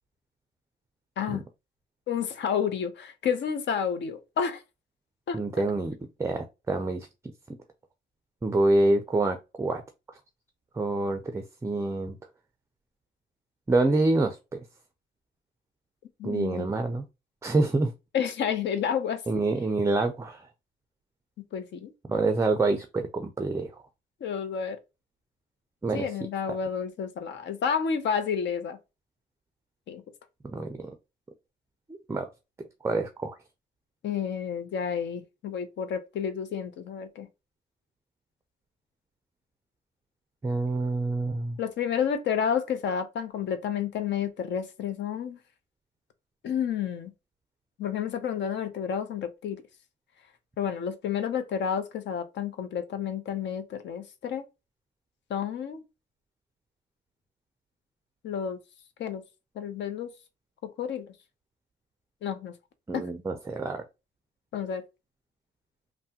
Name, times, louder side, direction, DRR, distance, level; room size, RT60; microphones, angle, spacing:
voice 1, 2.1-4.6 5.3-5.4 16.2-16.7 18.1-19.2 21.5-21.9 24.2-24.8 25.9-28.8 29.9-30.0 34.0-37.3 41.6-45.4 46.4-47.1 47.8-49.6 50.6-54.4 55.3-55.8 58.2-58.6 59.0-59.2 59.6-60.1 60.6-61.1 62.2-62.5 62.9-63.0 64.5-64.8, left 7 dB, 65° left, 0.6 m, -30 dB
voice 2, 5.3-5.9 6.2-7.1 8.4-9.8 10.7-12.2 13.7-14.6 16.2-17.0 17.4-17.9 19.3-20.5 22.1-23.8 25.8-26.1 26.5-26.6 30.5-30.9 32.1-32.3 32.8-33.4 40.4-41.6 62.9-63.8, right 2 dB, 15° right, 0.4 m, -26 dB
3.3 x 2.1 x 2.8 m
cardioid pair, 90°, 20 cm